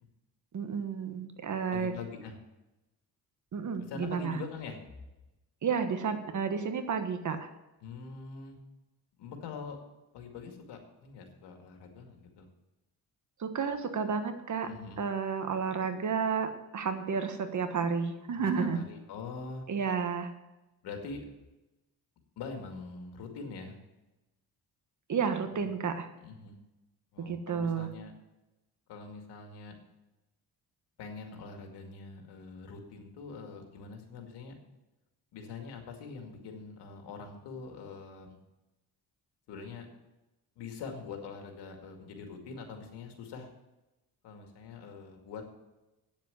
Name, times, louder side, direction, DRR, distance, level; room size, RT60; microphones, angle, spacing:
voice 1, 0.5-1.9 3.5-4.4 5.6-7.5 13.4-14.7 15.0-18.8 19.7-20.3 25.1-26.1 27.2-27.9, right 6 dB, 45° right, 8 dB, 1.4 m, -31 dB
voice 2, 1.7-2.4 3.9-4.8 7.8-8.6 9.2-9.8 10.1-12.5 14.6-15.0 18.3-19.6 20.8-21.2 22.4-23.8 25.5-25.7 26.2-26.6 27.1-28.1 28.9-29.7 31.0-34.5 35.3-38.4 39.5-39.9 40.6-43.5 44.2-45.4, left 4 dB, 90° left, 4 dB, 2.2 m, -44 dB
9.0 x 7.5 x 8.3 m, 1.0 s
cardioid pair, 100°, 39 cm